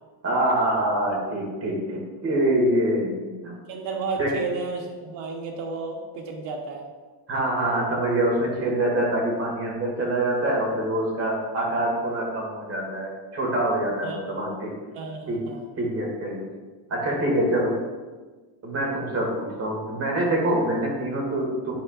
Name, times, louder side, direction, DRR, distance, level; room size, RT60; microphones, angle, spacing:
voice 1, 0.2-3.5 4.2-4.4 7.3-14.8 15.3-15.4 15.8-16.5 16.9-17.7 18.6-21.7, right 1 dB, 30° right, -1 dB, 2.2 m, -25 dB
voice 2, 3.7-6.8 14.0-14.2 14.9-15.6, right 4 dB, 90° right, 1 dB, 1.2 m, -32 dB
11.0 x 4.8 x 2.5 m, 1.3 s
cardioid pair, 130°, 47 cm